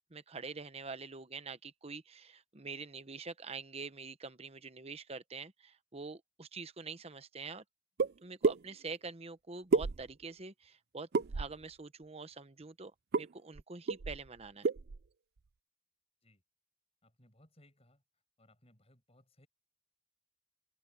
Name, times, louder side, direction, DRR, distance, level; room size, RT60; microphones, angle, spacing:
voice 1, 0.1-7.6 8.2-11.1 11.3-12.9 13.2-14.7, right 4 dB, 35° right, 1.0 m, -45 dB
sound 1, 8.0-8.1 8.4-8.6 9.7-10.3 11.1-11.6 13.1-13.3 13.5-13.6 13.9-14.3 14.6-15.0, right 4 dB, 60° right, 0.5 m, -30 dB
voice 2, 17.0-18.0 18.4-19.5, left 1 dB, 35° left, 7.6 m, -65 dB
open air
head